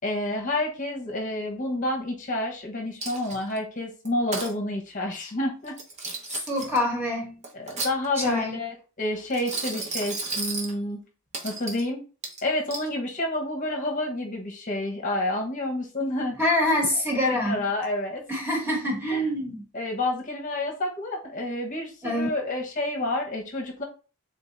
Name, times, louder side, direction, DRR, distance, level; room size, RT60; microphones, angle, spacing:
voice 1, 0.0-5.8 7.5-11.0 11.4-12.0 12.4-16.3 17.3-18.2 19.1-19.2 19.7-23.8, left 1 dB, 35° left, 1 dB, 1.0 m, -29 dB
Coin (dropping), 3.0-3.6 4.1-4.5 5.7-6.8 7.4-8.4 9.3-10.7 11.3-11.9 12.2-12.9, right 3 dB, 30° right, 1.0 m, -33 dB
voice 2, 6.3-7.4 8.1-8.6 16.4-17.6 18.3-19.6 22.0-22.3, left 1 dB, 10° right, -1 dB, 1.3 m, -25 dB
3.9 x 3.5 x 3.9 m, 0.34 s
head